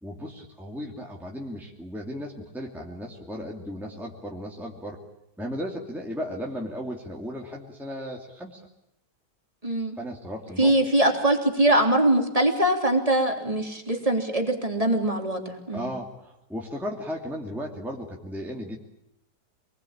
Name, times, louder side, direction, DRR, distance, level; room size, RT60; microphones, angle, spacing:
voice 1, 0.0-5.0 5.4-8.6 10.0-10.7 15.7-18.8, equal, ahead, -1 dB, 2.7 m, -35 dB
voice 2, 9.6-10.0 10.6-15.9, right 1 dB, 20° right, 3 dB, 3.4 m, -22 dB
27.0 x 21.0 x 8.9 m, 0.85 s
omnidirectional pair, 1.9 m